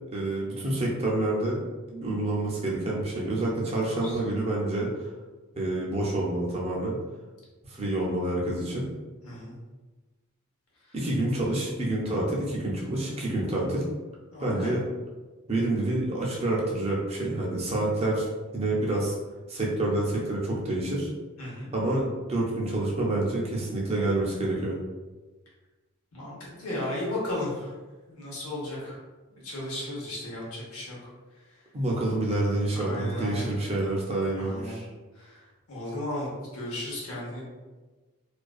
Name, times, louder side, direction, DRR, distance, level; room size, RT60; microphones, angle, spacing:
voice 1, 0.1-1.6 1.9-4.9 5.5-7.0 7.7-8.9 10.9-13.8 14.4-14.8 15.5-18.3 18.5-19.2 19.5-21.1 21.7-24.8 31.7-34.9, right 2 dB, 25° right, -3 dB, 0.4 m, -28 dB
voice 2, 3.6-4.2 9.2-9.5 14.3-14.7 21.4-21.7 26.1-27.7 28.1-29.0 29.3-31.0 31.5-31.6 32.7-33.5 34.4-34.8 35.1-35.4 35.7-36.3 36.5-37.4, left 1 dB, 75° left, -5 dB, 0.9 m, -35 dB
2.5 x 2.2 x 2.3 m, 1.3 s
head